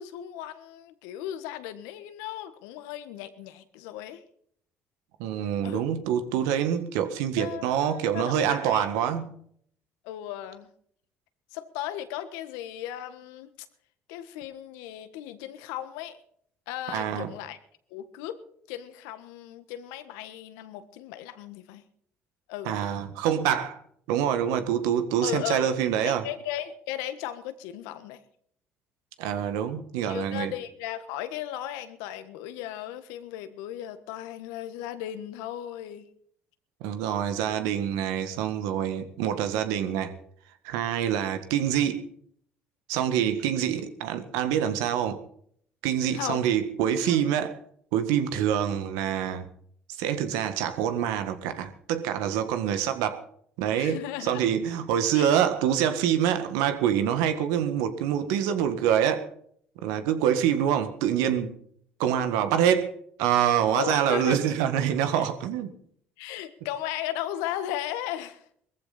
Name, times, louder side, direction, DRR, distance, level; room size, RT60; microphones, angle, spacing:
voice 1, 0.0-4.2 5.6-5.8 7.4-8.9 10.0-10.7 11.5-13.5 14.1-16.2 16.7-17.6 17.9-18.4 18.7-21.8 22.5-22.8 25.2-25.7 26.0-28.2 30.1-36.1 46.1-46.4 47.0-47.3 53.8-54.5 55.1-55.4 63.7-64.4 65.1-65.3 66.2-68.5, left 12 dB, 80° left, 11 dB, 1.5 m, -36 dB
voice 2, 5.2-9.4 16.9-17.3 22.7-23.8 24.1-26.2 29.2-30.5 36.8-40.1 40.6-42.0 42.9-45.2 45.8-47.5 47.9-49.5 50.0-53.2 53.6-59.3 59.8-61.6 62.0-62.9 63.2-65.7, right 9 dB, 80° right, 9 dB, 1.8 m, -26 dB
20.0 x 14.5 x 4.2 m, 0.64 s
hypercardioid pair, 65°, 6 cm